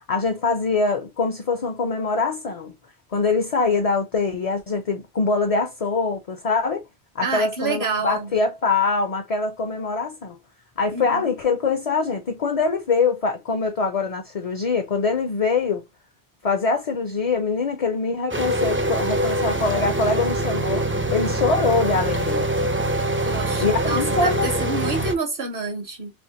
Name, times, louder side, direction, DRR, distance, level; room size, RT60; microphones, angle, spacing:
voice 1, 0.1-2.8 3.1-6.9 7.1-10.4 10.8-15.8 16.4-22.5 23.6-24.5 24.8-25.1, left 4 dB, 40° left, 0.6 m, -23 dB
voice 2, 7.2-8.3 10.9-11.3 23.2-26.1, right 3 dB, 60° right, 1.0 m, -28 dB
sound 1, 18.3-25.1, right 1 dB, 20° right, 0.4 m, -24 dB
3.5 x 2.9 x 2.8 m
omnidirectional pair, 1.1 m